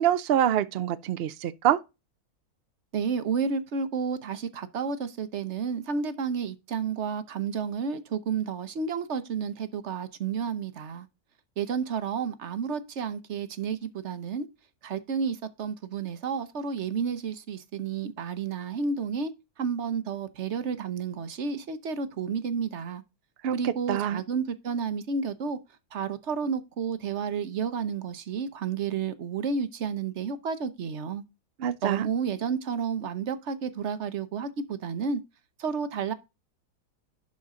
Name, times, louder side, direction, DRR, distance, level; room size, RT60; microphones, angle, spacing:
voice 1, 0.0-1.8 23.4-24.2 31.6-32.1, right 10 dB, 70° right, 0.5 m, -25 dB
voice 2, 2.9-11.1 11.6-14.5 14.8-19.3 19.6-23.0 23.5-25.6 25.9-31.2 31.8-35.2 35.6-36.1, right 6 dB, 50° right, 1.1 m, -31 dB
11.5 x 4.4 x 3.7 m
omnidirectional pair, 1.7 m